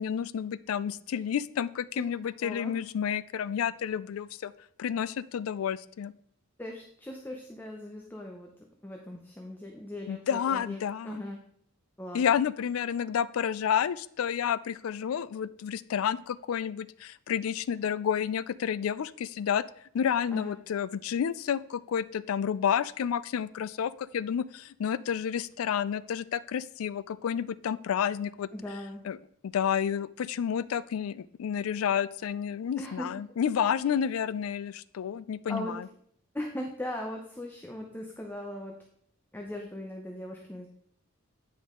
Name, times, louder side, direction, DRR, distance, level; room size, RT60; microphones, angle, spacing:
voice 1, 0.0-4.5 4.8-6.1 10.1-11.2 12.1-19.6 19.9-28.5 29.0-29.2 29.4-35.9, left 8 dB, 90° left, 18 dB, 0.3 m, -30 dB
voice 2, 2.4-2.8 6.6-8.5 8.8-11.4 12.0-12.2 20.3-20.5 28.5-29.0 32.8-33.1 35.5-35.8 36.3-38.7 39.3-40.7, left 1 dB, 10° left, 1 dB, 0.7 m, -39 dB
9.4 x 5.4 x 3.7 m, 0.68 s
head